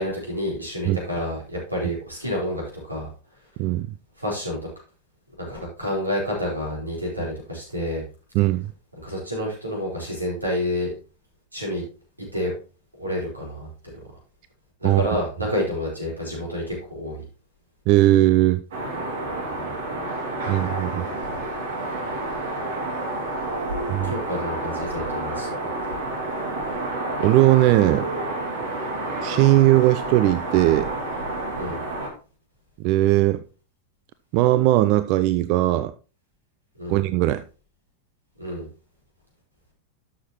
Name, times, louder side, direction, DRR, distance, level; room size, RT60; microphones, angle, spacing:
voice 1, 0.0-3.1 4.2-4.6 5.4-8.0 9.0-10.9 11.5-11.8 12.3-12.5 13.0-13.9 14.8-17.2 19.5-19.7 24.0-25.5 31.6-31.8 36.8-37.0 38.4-38.7, left 1 dB, 85° right, 4.5 m, -29 dB
voice 2, 8.3-8.7 14.8-15.0 17.9-18.6 20.5-21.1 23.9-24.1 27.2-28.1 29.2-30.9 32.8-33.4 34.3-35.9 36.9-37.4, right 16 dB, 45° right, 0.4 m, -19 dB
sound 1, 18.7-32.1, right 2 dB, 60° right, 2.5 m, -29 dB
12.5 x 6.3 x 3.0 m
figure-of-eight pair, 90°, 0 cm